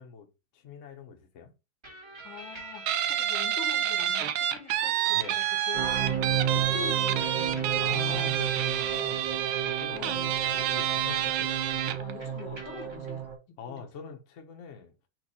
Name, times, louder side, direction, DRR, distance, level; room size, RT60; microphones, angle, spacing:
voice 1, 0.0-1.5 5.1-5.4 7.8-9.3 9.6-11.5 13.6-14.9, left 6 dB, 50° left, 1.0 m, -43 dB
sound 1, 1.8-3.3 4.0-6.6 7.2-11.9 12.2-13.1, right 2 dB, 20° right, 1.0 m, -46 dB
voice 2, 2.2-8.4 9.9-10.3 12.0-13.3 13.7-13.8, left 7 dB, 75° left, 1.7 m, -44 dB
Guitar, 2.9-12.1, right 11 dB, 85° right, 1.4 m, -28 dB
sound 2, 5.7-13.4, right 8 dB, 60° right, 1.8 m, -33 dB
4.6 x 2.6 x 4.2 m
omnidirectional pair, 2.3 m